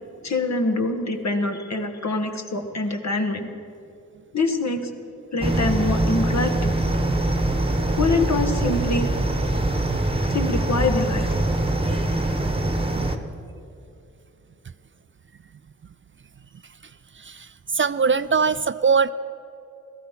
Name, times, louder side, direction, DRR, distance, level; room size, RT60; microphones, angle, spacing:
voice 1, 0.2-3.5 4.3-4.9 5.3-6.7 8.0-9.1 10.3-11.5, left 3 dB, 55° left, 5 dB, 1.5 m, -25 dB
sound 1, 5.4-13.2, right 1 dB, 15° right, 1.1 m, -23 dB
voice 2, 17.2-17.5 17.7-19.1, right 5 dB, 40° right, 14 dB, 0.4 m, -21 dB
16.5 x 14.0 x 5.7 m, 2.7 s
wide cardioid pair, 75°, 32 cm